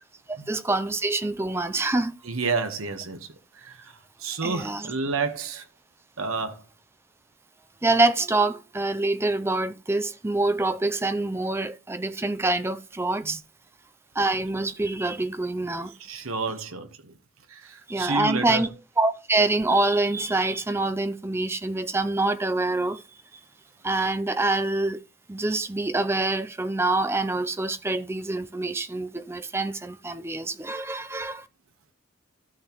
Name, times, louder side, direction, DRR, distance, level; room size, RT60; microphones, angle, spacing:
voice 1, 0.5-2.1 4.4-4.8 7.8-13.4 14.2-15.9 17.9-18.7 19.0-23.0 23.8-25.0 25.3-31.4, right 2 dB, 10° right, 0.4 m, -25 dB
voice 2, 2.2-3.3 3.5-5.6 6.2-6.6 13.2-13.4 16.0-17.1 17.5-18.7, right 4 dB, 80° right, 1.2 m, -30 dB
13.5 x 6.4 x 3.0 m
head